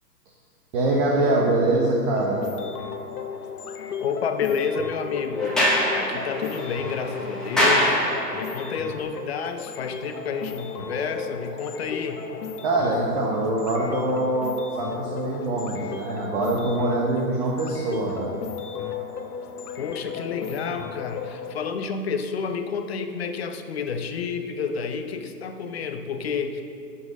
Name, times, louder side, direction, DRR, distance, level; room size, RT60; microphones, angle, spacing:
voice 1, 0.7-2.4 12.6-18.4, right 2 dB, 30° right, -3 dB, 1.2 m, -24 dB
sound 1, 2.1-21.5, left 6 dB, 70° left, 1.1 m, -36 dB
voice 2, 4.0-8.0 8.3-12.3 19.8-26.6, left 5 dB, 40° left, 7 dB, 0.7 m, -30 dB
Sliding door, 5.4-8.6, equal, ahead, 0.9 m, -24 dB
12.5 x 5.6 x 5.3 m, 2.3 s
hypercardioid pair, 155°, 48 cm